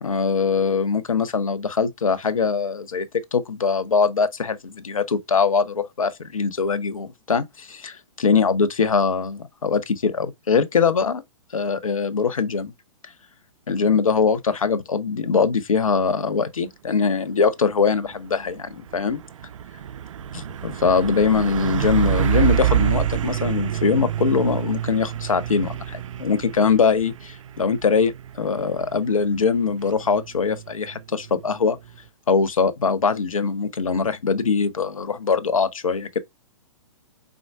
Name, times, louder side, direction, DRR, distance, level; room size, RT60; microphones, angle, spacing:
voice 1, 0.0-11.2 11.5-12.7 13.7-19.2 20.3-31.8 32.3-36.2, left 5 dB, 85° left, 0.7 m, -22 dB
Truck, 17.8-32.1, right 11 dB, 70° right, 0.4 m, -28 dB
4.5 x 3.7 x 2.3 m
hypercardioid pair, 120°, 17 cm